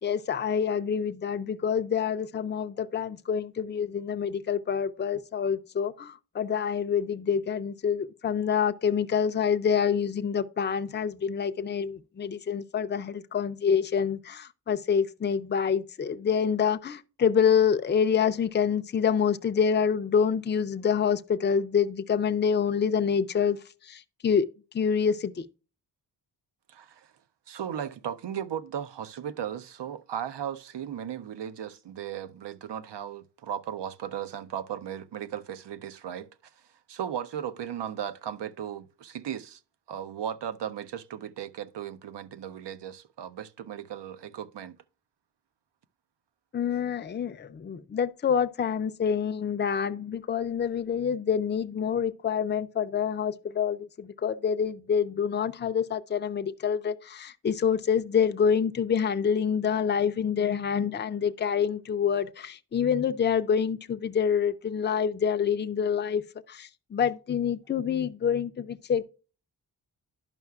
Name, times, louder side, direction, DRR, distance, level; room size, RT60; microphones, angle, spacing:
voice 1, 0.0-24.5 24.7-25.5 46.5-66.2 66.5-69.0, left 7 dB, 30° left, 0.4 m, -27 dB
voice 2, 26.7-27.1 27.5-36.3 36.9-39.6 39.9-44.8, right 9 dB, 90° right, 0.7 m, -36 dB
10.5 x 5.6 x 2.3 m
wide cardioid pair, 135°, 40 cm